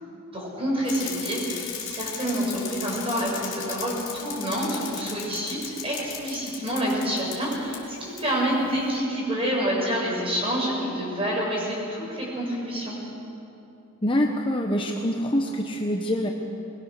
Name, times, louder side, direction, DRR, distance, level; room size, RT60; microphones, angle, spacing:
voice 1, 0.3-13.0, equal, 25° right, -3 dB, 6.5 m, -28 dB
Bicycle, 0.8-7.8 8.2-8.3, left 8 dB, 55° left, 4.1 m, -36 dB
voice 2, 14.0-16.3, equal, 25° left, 1 dB, 1.1 m, -25 dB
22.0 x 21.0 x 6.7 m, 2.9 s
head